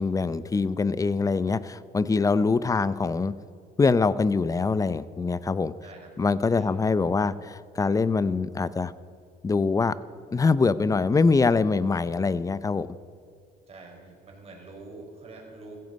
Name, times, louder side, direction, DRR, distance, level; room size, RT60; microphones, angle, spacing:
voice 1, 0.0-3.3 3.8-5.7 6.2-8.9 9.4-10.0 10.3-12.9, left 4 dB, 20° left, 17 dB, 0.6 m, -24 dB
voice 2, 13.7-15.8, right 3 dB, 35° right, 0 dB, 5.0 m, -45 dB
15.5 x 15.0 x 5.3 m, 2.3 s
cardioid pair, 110°, 17 cm